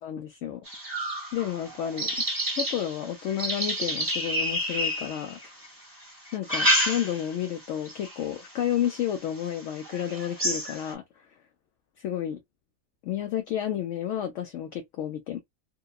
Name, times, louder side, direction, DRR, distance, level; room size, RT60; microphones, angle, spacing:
voice 1, 0.0-0.7 1.3-2.2 2.6-5.4 6.3-11.4 12.0-12.4 13.0-15.4, left 10 dB, 65° left, 0.8 m, -31 dB
sound 1, 0.7-5.7 6.3-7.4 7.9-8.2 8.8-8.9 9.4-9.5 9.8-10.9, equal, 15° right, 0.9 m, -29 dB
2.8 x 2.2 x 2.3 m
omnidirectional pair, 1.6 m